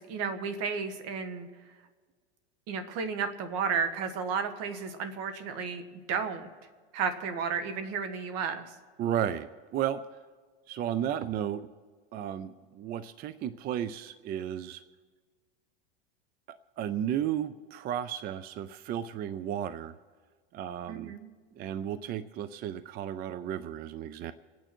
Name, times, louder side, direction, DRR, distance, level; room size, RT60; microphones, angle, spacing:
voice 1, 0.0-1.5 2.7-5.8 6.1-6.5 6.9-8.6 20.9-21.3, right 6 dB, 45° right, 9 dB, 1.7 m, -32 dB
voice 2, 9.0-10.0 10.7-11.7 12.1-14.8 16.5-20.0 20.5-21.1 21.6-24.3, right 10 dB, 30° right, 14 dB, 0.4 m, -33 dB
27.0 x 9.1 x 4.4 m, 1.5 s
supercardioid pair, 135°, 33 cm